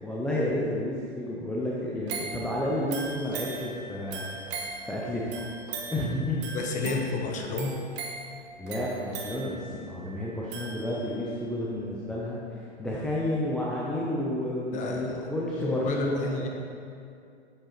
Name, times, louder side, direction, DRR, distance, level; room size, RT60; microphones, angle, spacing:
voice 1, 0.0-4.4 4.8-5.5 5.9-6.4 6.8-7.2 8.6-16.5, left 1 dB, 5° left, -6 dB, 0.4 m, -31 dB
sound 1, 2.1-11.3 11.8-11.9, right 4 dB, 30° right, 1.3 m, -40 dB
voice 2, 6.5-7.7 14.7-15.2 15.6-16.5, left 3 dB, 20° left, 2 dB, 1.0 m, -31 dB
7.8 x 7.4 x 4.5 m, 2.5 s
hypercardioid pair, 130°, 34 cm